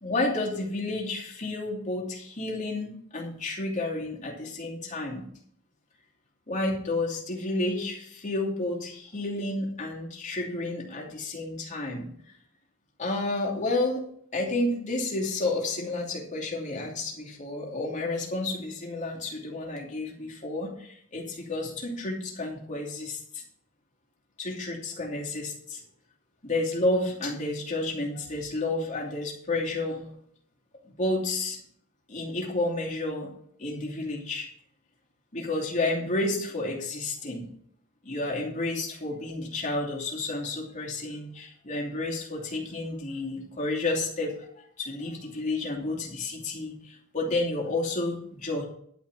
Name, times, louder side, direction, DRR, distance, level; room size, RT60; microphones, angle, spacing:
voice 1, 0.0-5.2 6.5-12.1 13.0-14.0 14.3-23.4 24.4-25.8 26.4-30.0 31.0-31.6 32.1-33.3 33.6-34.5 35.3-37.5 38.0-44.5 44.8-48.7, left 2 dB, 35° left, -2 dB, 2.7 m, -31 dB
11.0 x 5.9 x 7.3 m, 0.64 s
head